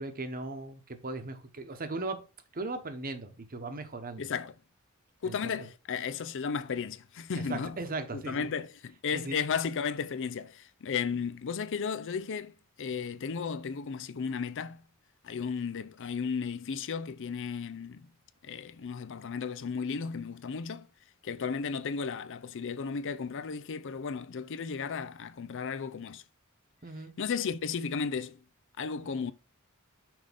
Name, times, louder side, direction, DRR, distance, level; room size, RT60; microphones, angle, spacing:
voice 1, 0.0-2.2 2.5-4.2 5.2-5.5 7.4-8.5 9.1-9.4 26.8-27.1, right 2 dB, 40° right, 1.0 m, -38 dB
voice 2, 4.2-4.5 5.2-7.8 8.1-14.8 15.2-18.1 18.4-20.9 21.2-26.2 27.2-28.4 28.8-29.3, left 6 dB, 60° left, 0.5 m, -34 dB
6.1 x 4.9 x 3.5 m
head